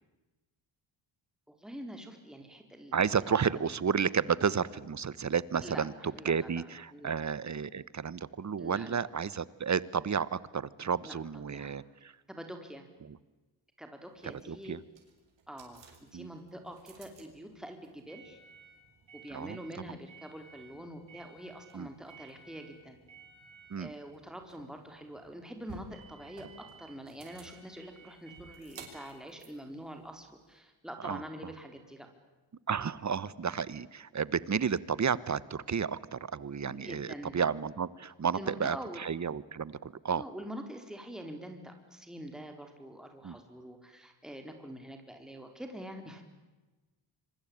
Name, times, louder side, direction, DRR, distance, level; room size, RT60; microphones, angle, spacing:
voice 1, 1.5-2.9 3.2-3.7 5.6-5.9 6.1-6.6 6.9-7.1 8.6-9.0 11.0-11.2 11.5-11.7 12.3-12.9 13.8-14.8 15.5-18.4 19.1-23.0 23.8-32.1 36.6-37.4 38.3-39.0 40.1-46.2, equal, ahead, 4 dB, 4.3 m, -45 dB
voice 2, 2.9-12.1 13.0-13.2 14.2-14.8 16.1-16.3 19.3-19.8 21.7-21.9 23.7-23.9 31.0-31.2 32.7-40.2 43.2-43.4, right 6 dB, 35° right, 19 dB, 1.2 m, -32 dB
sound 1, 14.1-30.6, right 5 dB, 65° right, 6.6 m, -55 dB
26.0 x 24.0 x 8.9 m, 1.2 s
supercardioid pair, 65°, 48 cm